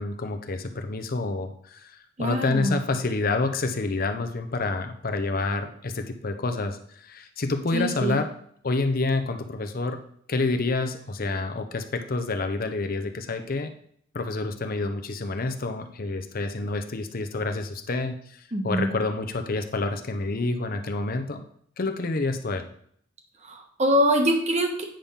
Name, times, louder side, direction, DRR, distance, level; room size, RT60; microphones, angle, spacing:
voice 1, 0.0-8.3 8.6-10.0 10.3-13.7 14.1-21.4 21.8-22.6, left 3 dB, 50° left, 7 dB, 0.7 m, -28 dB
voice 2, 2.2-2.8 7.7-8.2 18.5-18.9 23.4-24.8, equal, 35° right, 3 dB, 1.2 m, -24 dB
8.8 x 3.5 x 5.6 m, 0.64 s
head